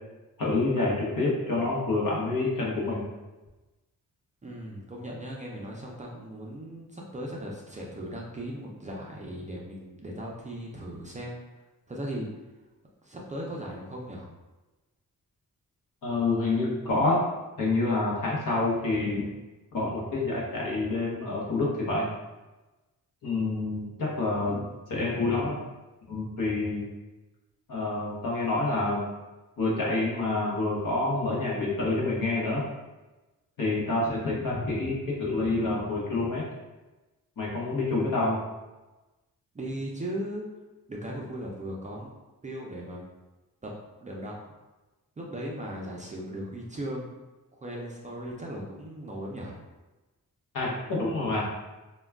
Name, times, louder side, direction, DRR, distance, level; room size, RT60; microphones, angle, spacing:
voice 1, 0.4-3.0 16.0-17.2 17.6-19.2 19.7-22.1 23.2-25.6 26.1-26.9 27.7-29.0 29.6-32.6 33.6-36.4 37.4-38.4 50.5-51.5, left 2 dB, 65° left, -4 dB, 0.9 m, -27 dB
voice 2, 4.4-11.4 11.9-12.3 13.0-14.3 39.5-40.4 40.9-42.1 42.4-43.1 43.6-43.7 44.0-44.3 45.2-47.1 47.5-49.6, right 1 dB, 20° right, -3 dB, 0.3 m, -37 dB
2.2 x 2.2 x 3.4 m, 1.1 s
wide cardioid pair, 125°, 35 cm